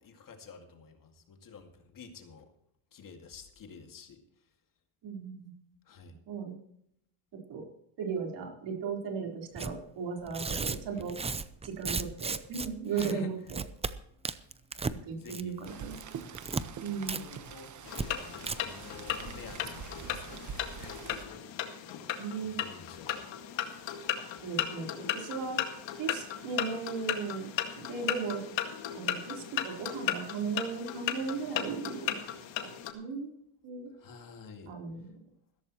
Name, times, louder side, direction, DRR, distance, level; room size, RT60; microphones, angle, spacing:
voice 1, 0.0-2.5 2.9-4.2 5.9-6.2 12.9-13.3 15.2-15.8 16.7-17.7 18.0-21.4 21.9-22.1 22.4-23.9 33.9-34.7, left 6 dB, 45° left, 5 dB, 2.2 m, -49 dB
voice 2, 5.0-5.5 6.3-6.5 7.5-7.6 8.0-11.2 11.6-13.6 15.0-16.0 16.8-17.2 22.1-22.6 24.4-25.6 26.0-27.5 27.8-28.5 28.9-32.2 32.6-33.3 33.6-33.9 34.7-35.0, right 5 dB, 60° right, 0 dB, 4.3 m, -36 dB
Tearing, 9.6-9.7 10.3-12.7 13.0-13.1 13.5-13.9 14.2-15.0 15.3-15.6 15.9-16.6 17.1-17.2 17.5-17.6 17.9-18.1 18.4-18.6, right 4 dB, 15° right, 0.5 m, -34 dB
Rain, 15.6-21.2, right 7 dB, 40° right, 1.3 m, -45 dB
sound 1, 17.8-32.9, left 10 dB, 70° left, 2.1 m, -36 dB
15.5 x 14.0 x 3.1 m, 0.73 s
cardioid pair, 125°, 47 cm